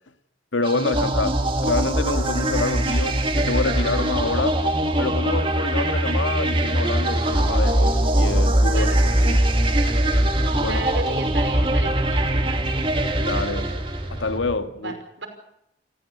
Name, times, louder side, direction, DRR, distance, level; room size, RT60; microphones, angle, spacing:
voice 1, 0.5-4.6 5.0-8.9 9.3-9.5 10.6-10.8 13.2-13.7 14.1-14.9, left 3 dB, 90° left, 1.9 m, -27 dB
sound 1, 0.6-14.3, right 1 dB, 30° right, 2.6 m, -21 dB
voice 2, 8.7-9.3 10.6-12.8 14.8-15.3, right 3 dB, 85° right, 5.5 m, -33 dB
sound 2, 9.0-14.6, equal, 10° left, 2.6 m, -34 dB
28.0 x 15.0 x 8.5 m
head